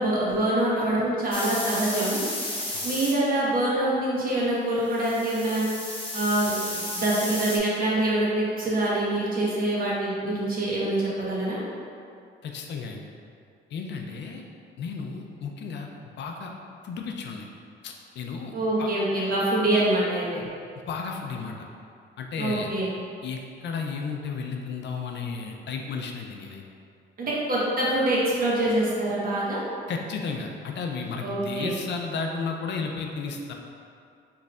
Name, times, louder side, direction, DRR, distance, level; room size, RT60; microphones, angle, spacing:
voice 1, 0.0-2.2 2.8-5.6 6.1-11.6 18.5-20.4 22.4-22.9 27.2-29.6 31.2-31.7, right 1 dB, 45° right, -6 dB, 1.1 m, -25 dB
sound 1, 1.3-3.1 4.9-7.6, left 1 dB, 25° left, 0.8 m, -33 dB
voice 2, 12.4-13.1 13.7-14.4 14.8-15.9 16.2-16.5 16.8-17.5 17.8-18.5 18.8-18.9 20.9-21.6 22.2-22.7 23.2-26.6 29.9-33.5, left 5 dB, 60° left, 2 dB, 0.5 m, -33 dB
4.2 x 3.2 x 2.4 m, 2.4 s
cardioid pair, 90°, 20 cm